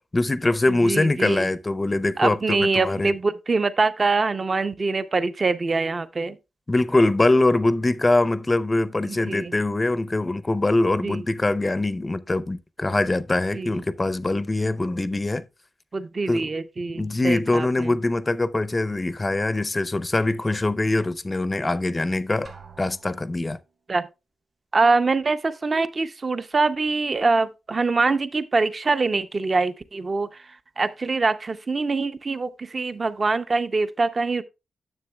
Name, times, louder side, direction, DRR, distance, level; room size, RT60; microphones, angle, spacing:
voice 1, 0.1-3.1 6.7-15.5 16.3-16.5 17.0-22.5 22.8-23.6, left 2 dB, 25° left, 0.5 m, -23 dB
voice 2, 0.7-1.5 2.2-6.4 9.0-9.5 11.0-11.2 13.5-13.8 15.9-17.9 23.9-24.1 24.7-34.4, right 3 dB, 40° right, 0.5 m, -24 dB
Drum, 22.5-23.7, right 5 dB, 60° right, 1.7 m, -47 dB
9.6 x 7.0 x 2.2 m
cardioid pair, 80°, 0 cm